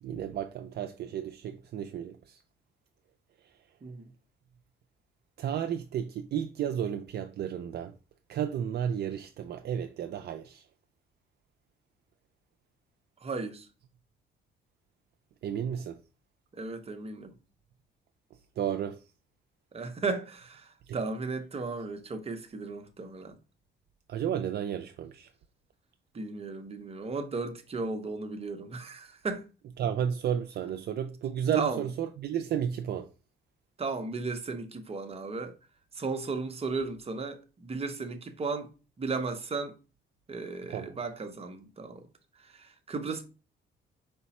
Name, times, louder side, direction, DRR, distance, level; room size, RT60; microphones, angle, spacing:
voice 1, 0.0-2.4 3.4-3.5 5.4-7.9 8.3-10.7 15.4-16.0 18.6-19.0 20.9-21.0 24.1-25.3 29.8-33.1 40.7-40.9, right 9 dB, 55° right, 0.4 m, -32 dB
voice 2, 13.2-13.7 16.5-17.3 19.7-23.4 26.1-29.5 31.5-31.8 33.8-35.5 35.9-38.7 39.0-39.7 40.3-42.1 42.4-43.2, right 4 dB, 30° right, 0.7 m, -35 dB
4.8 x 2.2 x 4.1 m
cardioid pair, 90°, 20 cm